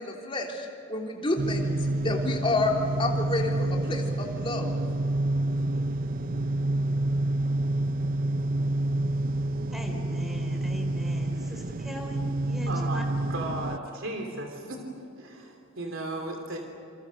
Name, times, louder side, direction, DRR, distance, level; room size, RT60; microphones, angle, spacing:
voice 1, 0.0-2.7 3.0-4.7, left 2 dB, 25° left, 0 dB, 3.4 m, -29 dB
sound 1, 1.4-13.8, right 2 dB, 40° right, 0.5 m, -28 dB
voice 2, 9.7-13.0 13.4-13.5, equal, ahead, 3 dB, 4.0 m, -40 dB
voice 3, 12.7-13.0 13.3-14.8 15.1-16.6, right 2 dB, 70° right, 3 dB, 3.2 m, -35 dB
28.0 x 27.5 x 6.5 m, 2.7 s
head